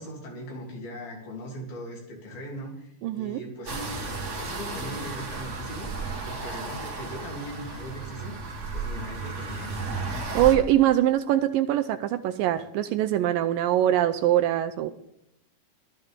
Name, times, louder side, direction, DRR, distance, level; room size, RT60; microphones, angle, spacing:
voice 1, 0.0-4.0 4.4-8.3 8.7-9.9, equal, 75° left, -2 dB, 5.0 m, -39 dB
voice 2, 3.0-3.4 10.3-14.9, right 12 dB, 80° right, 8 dB, 2.1 m, -23 dB
sound 1, 3.6-10.5, right 3 dB, 50° right, 0.8 m, -34 dB
16.0 x 12.5 x 3.7 m, 0.80 s
omnidirectional pair, 4.3 m